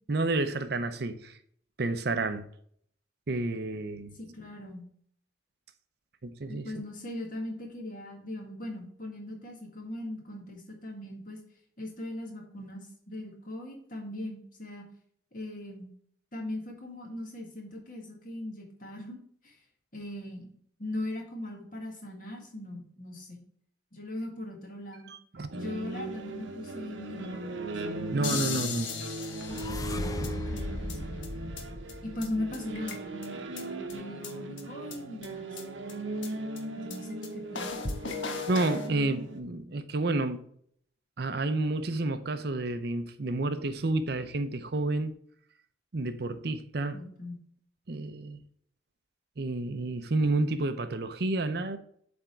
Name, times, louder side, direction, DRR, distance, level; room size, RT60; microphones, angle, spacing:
voice 1, 0.1-1.4 1.8-2.4 3.3-4.1 6.2-6.7 25.1-25.5 28.1-28.9 38.5-40.4 41.2-45.1 45.9-47.0 47.9-48.4 49.4-51.8, right 2 dB, 55° right, 0.6 m, -30 dB
voice 2, 4.1-4.8 6.5-11.4 11.8-14.9 15.3-15.9 16.3-19.5 19.9-20.5 20.8-23.4 23.9-25.1 25.5-27.5 27.8-28.6 29.5-31.5 32.0-35.6 36.8-37.7 46.9-47.4, left 1 dB, 45° left, 1.7 m, -40 dB
sound 1, 25.5-39.4, right 2 dB, 85° right, 0.9 m, -38 dB
sound 2, 28.2-30.3 30.6-30.7 30.9-31.0 31.2-31.3 31.6-31.7 31.9-32.0 32.2-32.3 32.5-33.3 33.6-33.7 33.9-34.0 34.2-34.3 34.6-34.7 34.9-35.0 35.2-35.3 35.6-35.7 35.9-36.0 36.2-36.3 36.6-36.7 36.9-37.0 37.2-37.3 37.5-38.9, left 5 dB, 80° left, 1.0 m, -36 dB
sound 3, 28.6-32.8, left 1 dB, 20° left, 0.4 m, -38 dB
7.7 x 3.5 x 4.5 m
head